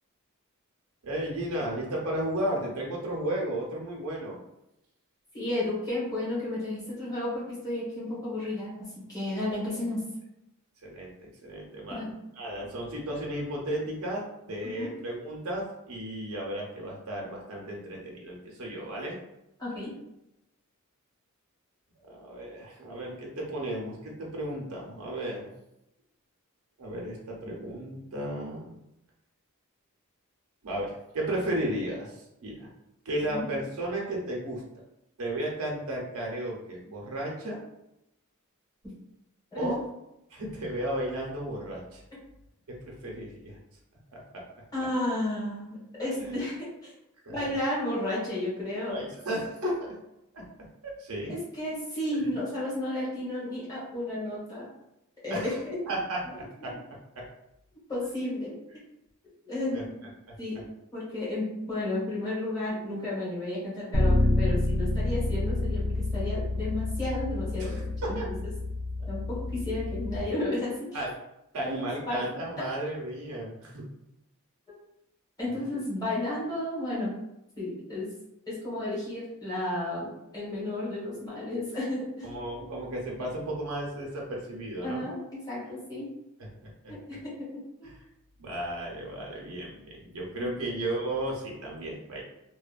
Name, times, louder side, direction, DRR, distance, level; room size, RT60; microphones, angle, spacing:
voice 1, 1.0-4.4 10.8-12.1 12.4-19.2 22.1-25.5 26.8-28.7 30.6-32.1 32.4-32.7 33.0-34.6 35.2-37.6 39.6-39.8 40.3-42.0 42.7-43.5 44.1-44.4 46.2-46.4 47.2-47.4 48.9-49.7 50.3-50.4 50.8-51.4 55.3-55.6 55.9-56.7 57.2-57.3 59.7-59.8 60.3-60.4 67.6-68.2 70.9-71.1 71.5-73.8 82.2-85.1 86.8-86.9 88.4-92.2, right 1 dB, 75° right, -2 dB, 0.6 m, -34 dB
voice 2, 5.3-10.0 11.9-12.1 12.6-12.7 14.7-14.9 19.6-19.9 33.2-33.5 39.5-39.8 44.7-46.9 47.3-49.0 51.3-54.7 55.2-55.5 57.9-58.5 59.4-60.0 60.4-60.6 60.9-68.5 69.1-71.0 71.7-71.8 72.0-72.2 75.4-77.1 77.6-78.1 78.5-80.1 80.3-82.3 84.8-86.1 86.9-87.9 90.4-90.5, left 1 dB, 15° left, -8 dB, 1.2 m, -32 dB
Bass guitar, 63.9-70.2, left 2 dB, 40° left, 0.6 m, -28 dB
2.8 x 2.1 x 2.4 m, 0.86 s
head